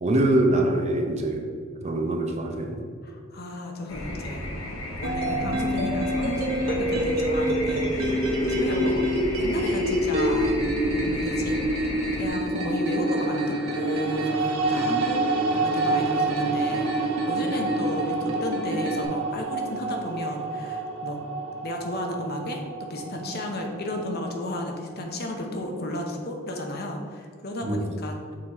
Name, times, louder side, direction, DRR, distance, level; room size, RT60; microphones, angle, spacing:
voice 1, 0.0-1.4 1.8-2.8 27.6-27.8, right 1 dB, 30° right, 2 dB, 0.6 m, -23 dB
voice 2, 3.0-4.6 5.0-10.5 10.8-15.2 15.5-21.2 21.6-28.3, left 1 dB, 45° left, 2 dB, 0.8 m, -33 dB
sound 1, 3.9-12.3, left 1 dB, 75° left, 1.1 m, -34 dB
sound 2, 5.0-19.1, equal, 70° right, 1.2 m, -27 dB
sound 3, 12.6-24.8, right 4 dB, 90° right, 0.7 m, -30 dB
6.6 x 3.8 x 4.2 m, 2.1 s
head